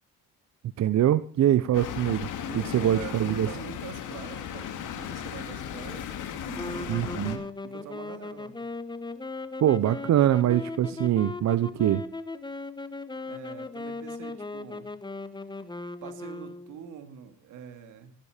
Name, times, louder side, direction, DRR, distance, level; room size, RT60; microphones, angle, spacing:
voice 1, 0.8-2.3 2.5-3.5 6.9-7.4 9.6-12.0, right 11 dB, 65° right, 14 dB, 0.8 m, -23 dB
sound 1, 1.7-7.4, left 9 dB, 85° left, 2.4 m, -36 dB
voice 2, 2.5-7.1 7.6-8.6 13.3-14.9 16.0-18.1, right 8 dB, 90° right, 8 dB, 2.5 m, -44 dB
sound 2, 6.5-17.0, left 3 dB, 15° left, 1.1 m, -38 dB
15.5 x 12.0 x 5.1 m, 0.41 s
cardioid pair, 90°, 30 cm